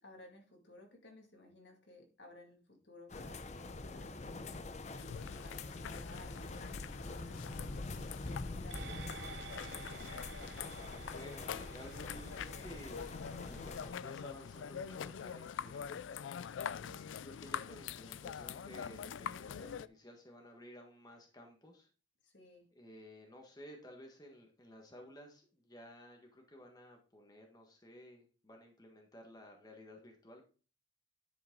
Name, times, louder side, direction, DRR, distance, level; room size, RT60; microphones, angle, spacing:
voice 1, 0.0-9.9 16.7-17.2 22.2-22.7, left 1 dB, 65° left, 2 dB, 2.3 m, -58 dB
sound 1, 3.1-13.9, left 2 dB, 35° left, 0.6 m, -45 dB
sound 2, 5.0-19.9, left 7 dB, 80° left, 0.4 m, -45 dB
sound 3, 8.7-17.4 17.8-17.9, right 6 dB, 70° right, 0.6 m, -54 dB
voice 2, 11.1-13.2 13.5-16.0 17.1-21.9 22.7-30.5, equal, 20° left, 2 dB, 1.4 m, -54 dB
10.5 x 5.9 x 3.8 m, 0.35 s
head